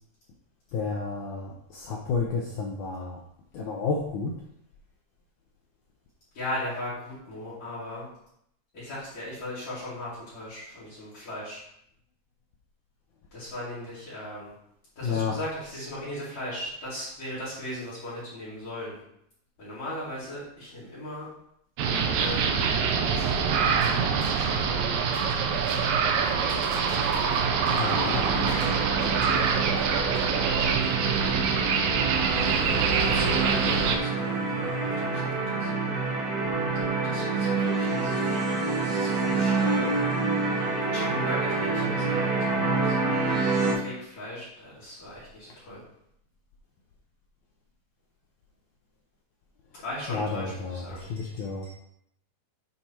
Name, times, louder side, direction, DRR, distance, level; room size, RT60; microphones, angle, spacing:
voice 1, 0.7-3.2 3.5-4.4 15.0-15.4 27.7-28.6 32.4-32.9 45.5-45.6 49.7-49.8 50.1-51.8, left 4 dB, 80° left, 0 dB, 1.7 m, -32 dB
voice 2, 6.3-8.1 8.7-11.6 13.3-14.5 15.0-19.0 19.6-21.3 22.1-22.7 23.1-23.7 24.3-25.2 26.2-26.9 29.0-32.2 32.8-35.7 36.9-39.9 40.9-43.2 43.7-45.8 49.7-51.1 51.6-51.8, left 1 dB, 50° left, -10 dB, 4.0 m, -38 dB
sound 1, 21.8-34.0, right 6 dB, 85° right, 2.4 m, -25 dB
sound 2, 23.8-24.4 25.0-25.9 26.3-28.2 28.4-29.4 29.7-29.8 30.1-30.2, equal, 25° right, 2.1 m, -43 dB
sound 3, 27.9-43.7, right 3 dB, 50° right, 2.6 m, -27 dB
8.2 x 4.3 x 4.4 m, 0.75 s
omnidirectional pair, 4.3 m